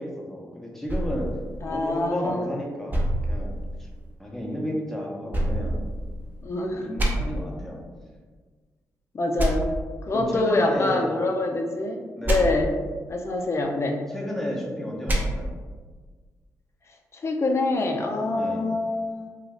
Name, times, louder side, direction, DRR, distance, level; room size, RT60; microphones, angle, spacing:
voice 1, 0.0-1.3 1.7-3.5 4.2-5.8 6.7-7.9 10.1-11.1 12.2-12.5 14.1-15.5 18.3-18.7, left 1 dB, 5° left, -2 dB, 0.7 m, -32 dB
sound 1, 0.9-2.3 2.9-4.1 5.3-6.5 7.0-7.1 9.4-9.5 12.2-12.4 15.1-15.2, right 1 dB, 30° right, 0.7 m, -27 dB
voice 2, 1.6-2.5 6.4-6.9 9.1-9.7 10.1-12.7 13.1-14.0 17.1-19.3, left 2 dB, 45° left, 2 dB, 0.4 m, -25 dB
2.5 x 2.3 x 3.3 m, 1.4 s
cardioid pair, 60°, 7 cm